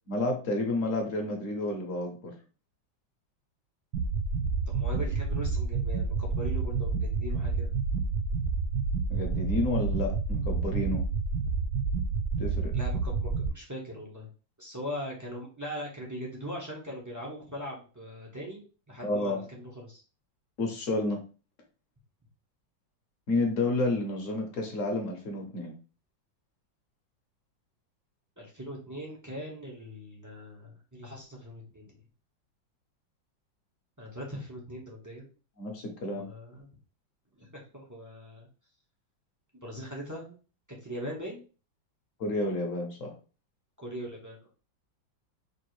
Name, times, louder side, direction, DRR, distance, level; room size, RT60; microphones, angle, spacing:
voice 1, 0.1-2.3 9.1-11.0 12.4-12.7 19.0-19.4 20.6-21.2 23.3-25.7 35.6-36.2 42.2-43.1, left 2 dB, 55° left, 2 dB, 1.0 m, -30 dB
sound 1, 3.9-13.5, right 4 dB, 75° right, 0.9 m, -29 dB
voice 2, 4.7-7.7 12.7-14.3 14.6-20.0 28.4-32.0 34.0-35.3 36.0-36.7 37.3-38.5 39.5-40.4 40.7-41.4 43.8-44.5, equal, 25° right, -3 dB, 0.3 m, -40 dB
5.1 x 2.5 x 3.1 m, 0.36 s
omnidirectional pair, 2.1 m